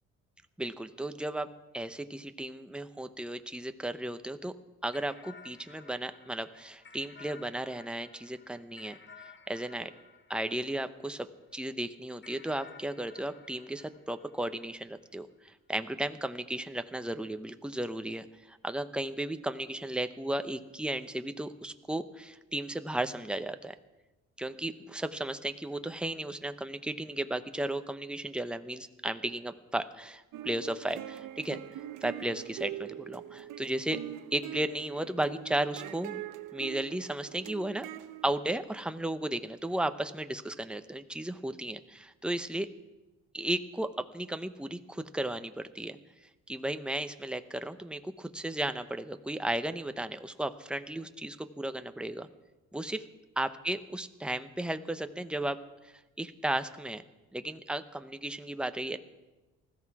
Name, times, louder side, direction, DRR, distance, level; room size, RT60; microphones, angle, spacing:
voice 1, 0.6-1.5 1.7-4.5 4.8-9.0 9.5-9.9 10.3-23.7 24.4-31.6 32.0-34.0 34.3-36.2 36.5-37.9 38.2-42.7 43.3-46.0 46.5-52.3 52.7-53.0 53.4-55.6 55.8-57.0 57.3-59.0, right 1 dB, 5° right, 9 dB, 0.9 m, -35 dB
sound 1, 4.9-11.5 12.2-15.0, left 5 dB, 40° left, 1.4 m, -55 dB
sound 2, 30.3-38.3, right 13 dB, 90° right, 0.9 m, -43 dB
20.0 x 14.5 x 4.8 m, 1.1 s
cardioid pair, 90°, 30 cm